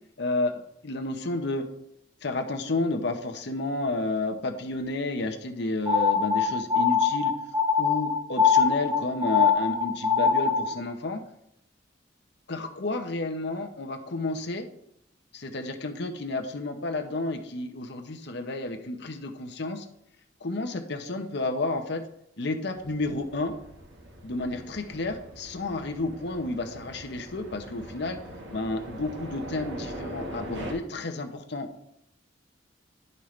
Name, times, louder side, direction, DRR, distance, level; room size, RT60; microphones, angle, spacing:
voice 1, 0.2-0.5 0.8-1.6 2.2-7.3 7.8-11.2 12.5-14.7 15.3-19.8 20.4-22.0 22.4-23.5 24.2-28.2 28.5-31.7, left 2 dB, 65° left, 6 dB, 0.9 m, -31 dB
sound 1, 5.9-10.8, left 6 dB, 15° right, 1.1 m, -23 dB
sound 2, 22.7-30.7, right 1 dB, 80° right, 1.4 m, -42 dB
10.0 x 5.4 x 3.2 m, 0.78 s
head